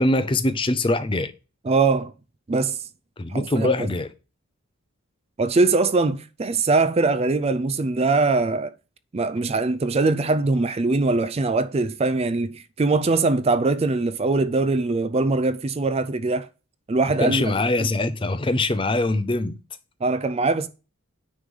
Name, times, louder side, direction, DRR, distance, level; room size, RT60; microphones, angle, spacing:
voice 1, 0.0-1.3 3.2-4.1 17.2-19.6, left 2 dB, 25° left, 0.5 m, -23 dB
voice 2, 1.6-2.1 2.5-2.8 3.3-3.9 5.4-8.7 9.1-16.5 16.9-17.4 17.8-17.9 20.0-20.7, right 3 dB, 30° right, 0.4 m, -22 dB
9.6 x 3.3 x 5.4 m
head